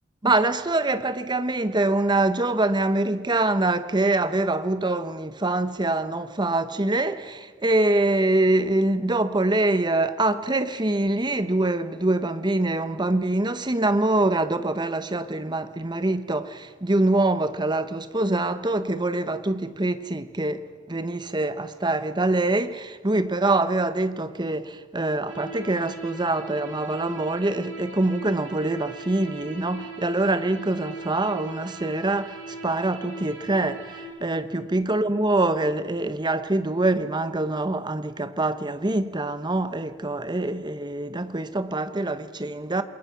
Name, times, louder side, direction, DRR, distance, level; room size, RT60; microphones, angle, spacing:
voice 1, 0.2-42.8, right 2 dB, 20° right, 1.0 m, -24 dB
sound 1, 25.3-34.1, right 3 dB, 80° right, 5.5 m, -40 dB
28.0 x 22.0 x 6.0 m
head